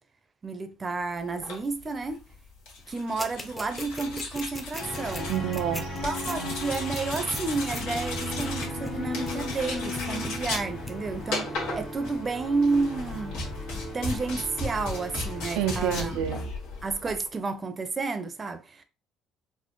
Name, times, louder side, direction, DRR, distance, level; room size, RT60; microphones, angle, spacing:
voice 1, 0.4-2.2 2.9-5.3 6.0-13.4 13.9-16.1 16.8-18.8, right 3 dB, 30° right, 0.6 m, -31 dB
sound 1, 1.3-17.3, left 3 dB, 80° left, 1.5 m, -36 dB
sound 2, 3.2-9.7 10.0-10.6 10.9-11.0, left 1 dB, 15° left, 0.7 m, -37 dB
sound 3, 4.8-16.4, equal, 45° left, 1.4 m, -37 dB
voice 2, 5.3-6.1 6.4-6.6 15.6-16.4, right 10 dB, 85° right, 0.3 m, -29 dB
4.1 x 2.0 x 3.1 m
supercardioid pair, 90°, 0 cm